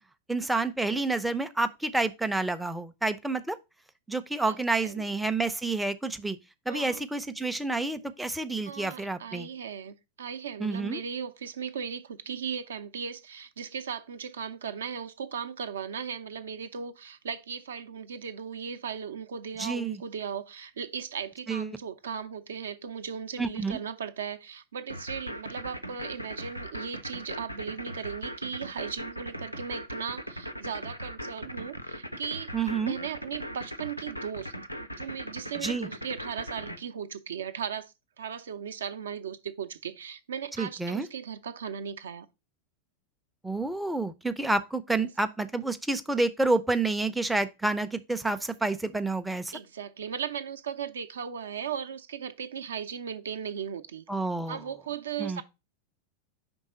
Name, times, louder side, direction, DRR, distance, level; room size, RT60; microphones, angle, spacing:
voice 1, 0.3-3.6 4.1-6.4 6.7-9.5 10.6-11.0 19.6-20.0 21.5-21.7 23.4-23.8 32.5-33.0 35.6-35.9 40.6-41.1 43.4-49.5 54.1-54.6 55.2-55.4, right 3 dB, 5° right, 0.4 m, -29 dB
voice 2, 4.5-5.2 6.7-7.0 8.6-32.5 32.8-34.5 34.9-42.3 44.9-45.1 49.5-54.0 54.5-55.4, right 7 dB, 65° right, 0.5 m, -37 dB
sound 1, 24.9-36.8, equal, 90° left, 0.6 m, -39 dB
5.3 x 3.5 x 5.0 m
figure-of-eight pair, 90°, 0 cm